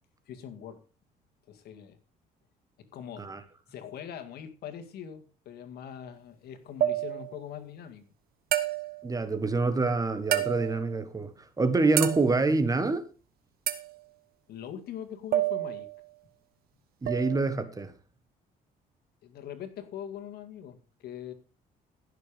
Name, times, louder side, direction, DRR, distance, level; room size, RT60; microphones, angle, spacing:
voice 1, 0.3-0.8 1.5-2.0 2.9-3.3 3.7-8.1 14.5-15.9 19.2-21.3, left 9 dB, 70° left, 2.1 m, -42 dB
sound 1, 6.8-7.4 8.5-9.1 10.3-10.9 12.0-12.5 13.7-14.0 15.3-16.0 17.1-17.4, right 12 dB, 65° right, 1.4 m, -29 dB
voice 2, 9.0-11.3 11.6-13.0 17.0-17.9, right 3 dB, 20° right, 1.5 m, -26 dB
15.5 x 6.8 x 5.2 m
cardioid pair, 110°, 17 cm